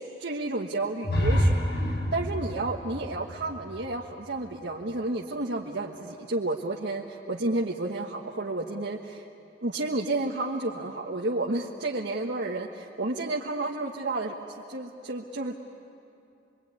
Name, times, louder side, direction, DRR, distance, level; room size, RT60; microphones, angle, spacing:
voice 1, 0.0-1.5 2.1-9.2 9.6-14.4 14.7-15.5, right 2 dB, 90° right, -2 dB, 1.4 m, -31 dB
sound 1, 1.0-4.9, equal, 70° left, 5.2 m, -28 dB
25.5 x 23.0 x 9.6 m, 2.6 s
head